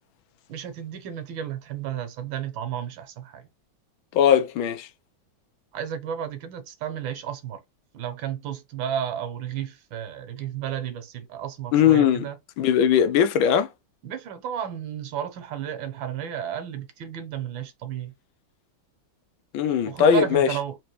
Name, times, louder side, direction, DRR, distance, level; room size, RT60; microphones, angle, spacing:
voice 1, 0.5-3.5 5.7-7.6 7.9-12.4 14.0-18.1 19.9-20.8, right 9 dB, 75° right, 1.6 m, -32 dB
voice 2, 4.1-4.9 11.7-12.3 12.6-13.7 19.5-20.5, left 8 dB, 80° left, 1.4 m, -19 dB
3.9 x 3.0 x 3.1 m
omnidirectional pair, 2.1 m